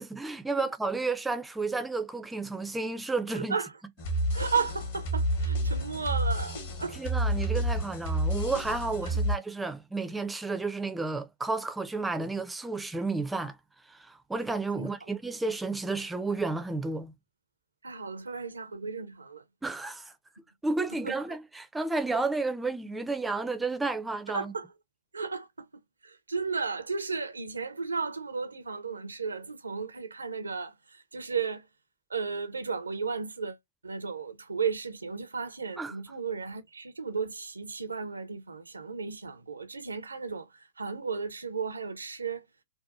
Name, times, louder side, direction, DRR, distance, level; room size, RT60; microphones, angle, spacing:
voice 1, 0.0-3.5 6.9-13.6 13.9-17.1 19.6-20.1 20.6-24.5 35.8-35.9, right 3 dB, 5° right, 0.4 m, -32 dB
voice 2, 3.3-3.7 4.3-7.0 9.0-9.3 14.8-14.9 17.8-19.4 21.0-21.2 24.3-24.7 25.1-25.7 26.0-31.7 32.1-33.6 33.8-42.4, right 5 dB, 75° right, 0.5 m, -34 dB
sound 1, 4.0-9.3, right 1 dB, 50° left, 1.0 m, -29 dB
2.7 x 2.2 x 2.4 m
figure-of-eight pair, 105°, 0 cm